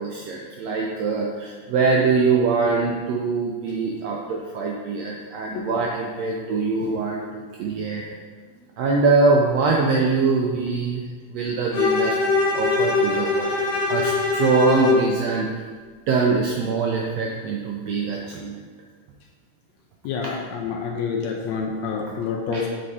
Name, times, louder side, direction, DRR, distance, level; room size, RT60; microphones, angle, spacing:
voice 1, 0.0-8.0 8.8-11.0 11.3-12.2 12.5-13.6 13.9-15.6 16.1-18.6 22.1-22.2 22.5-22.6, right 4 dB, 80° right, -1 dB, 1.5 m, -23 dB
Bowed string instrument, 11.7-15.1, left 3 dB, 55° left, 2.8 m, -22 dB
voice 2, 20.0-22.7, left 5 dB, 75° left, 1 dB, 1.7 m, -28 dB
8.4 x 4.3 x 4.2 m, 1.5 s
omnidirectional pair, 3.6 m